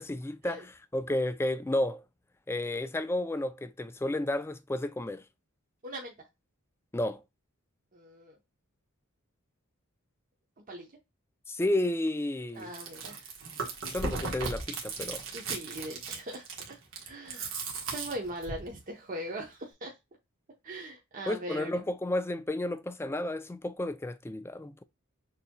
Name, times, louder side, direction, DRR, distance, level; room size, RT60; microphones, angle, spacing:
voice 1, 0.0-2.0 2.5-5.2 6.9-7.2 11.5-12.7 13.9-15.2 21.3-24.8, left 1 dB, 10° left, 0.4 m, -32 dB
voice 2, 5.8-6.1 7.9-8.4 10.7-10.9 12.6-13.3 15.3-16.4 17.0-17.5 17.9-19.9 20.6-21.8, right 1 dB, 40° right, 0.8 m, -40 dB
Chewing mastication, 12.6-18.7, right 4 dB, 65° right, 1.4 m, -37 dB
6.6 x 2.9 x 2.2 m
head